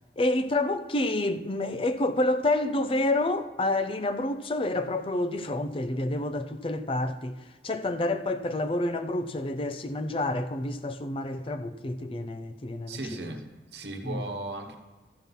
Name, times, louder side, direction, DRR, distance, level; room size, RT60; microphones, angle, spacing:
voice 1, 0.2-7.4 7.6-13.3 14.0-14.2, left 2 dB, 30° left, 0.5 m, -28 dB
voice 2, 12.9-14.8, right 2 dB, 70° right, 1.1 m, -37 dB
13.5 x 5.8 x 5.4 m
head